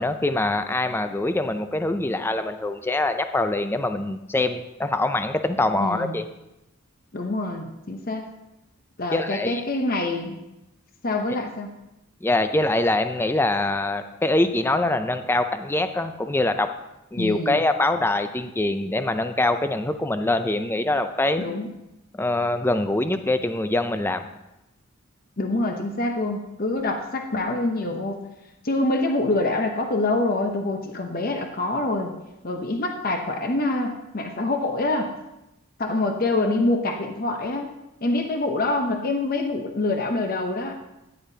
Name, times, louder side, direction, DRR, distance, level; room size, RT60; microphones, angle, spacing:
voice 1, 0.0-6.2 9.1-9.6 12.2-16.8 17.1-21.4 22.1-24.3, left 2 dB, 10° left, 9 dB, 0.4 m, -24 dB
voice 2, 5.8-6.1 7.1-8.3 9.0-10.4 11.0-11.7 17.2-17.6 21.4-21.7 25.4-28.2 28.6-32.1 32.4-35.1 35.8-37.7 38.0-40.8, left 2 dB, 40° left, 4 dB, 0.8 m, -25 dB
13.5 x 9.9 x 2.8 m, 0.94 s
head